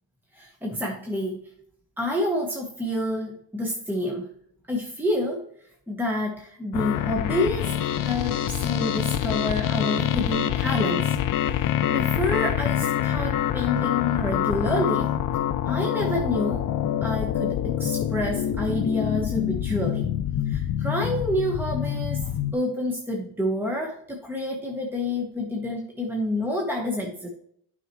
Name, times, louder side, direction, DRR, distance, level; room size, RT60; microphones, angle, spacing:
voice 1, 0.3-1.4 2.0-4.3 4.7-5.4 5.9-11.2 11.5-15.1 15.6-16.6 17.0-20.1 20.5-27.3, left 1 dB, 5° right, 0 dB, 1.2 m, -28 dB
sound 1, 6.7-22.5, left 10 dB, 50° left, 0.5 m, -26 dB
9.0 x 5.8 x 3.0 m, 0.66 s
cardioid pair, 100°, 44 cm